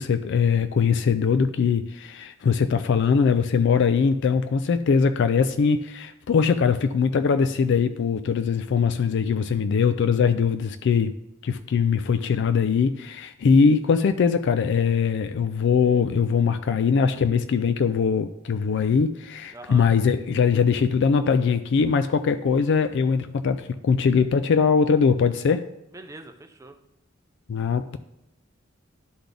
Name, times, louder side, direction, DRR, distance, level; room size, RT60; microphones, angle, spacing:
voice 1, 0.0-11.1 11.4-25.7 27.5-28.0, left 6 dB, 60° left, 10 dB, 0.3 m, -21 dB
voice 2, 19.5-19.9 25.9-26.8, right 2 dB, 15° right, 6 dB, 0.6 m, -42 dB
11.5 x 4.0 x 3.4 m, 0.86 s
head